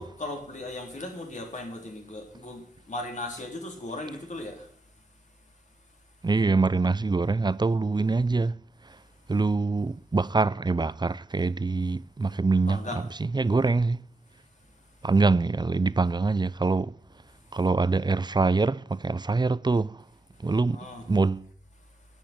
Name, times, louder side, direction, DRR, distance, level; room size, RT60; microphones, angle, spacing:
voice 1, 0.0-5.5 12.7-13.0 17.4-17.6 20.7-21.0 21.8-21.9, left 2 dB, 55° left, 3.7 m, -38 dB
voice 2, 6.2-8.6 9.3-14.0 15.0-16.9 17.5-20.0 20.4-21.5, right 3 dB, 30° right, 0.5 m, -24 dB
10.5 x 8.9 x 9.3 m
wide cardioid pair, 60°, 15 cm